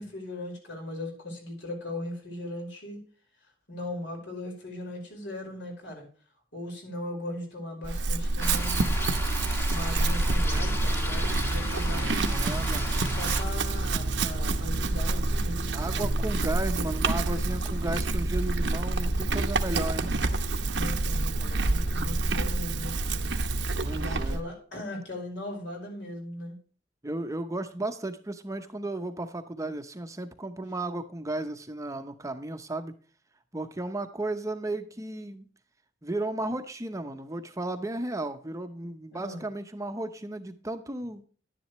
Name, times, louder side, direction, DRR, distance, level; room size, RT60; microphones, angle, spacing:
voice 1, 0.0-3.0 3.7-6.1 6.5-8.9 9.7-12.4 12.9-16.0 20.7-23.3 23.9-26.6 39.1-39.4, left 1 dB, 75° left, 1 dB, 5.1 m, -38 dB
Chewing mastication / Livestock farm animals working animals, 7.8-24.4, right 2 dB, 80° right, 0.9 m, -27 dB
sound 1, 8.4-13.4, left 1 dB, 15° left, 1.2 m, -36 dB
voice 2, 12.1-13.1 15.7-20.1 23.8-24.5 27.0-32.9 33.5-35.5 36.0-41.3, right 2 dB, 20° right, 8 dB, 0.8 m, -34 dB
11.0 x 10.5 x 3.1 m, 0.41 s
head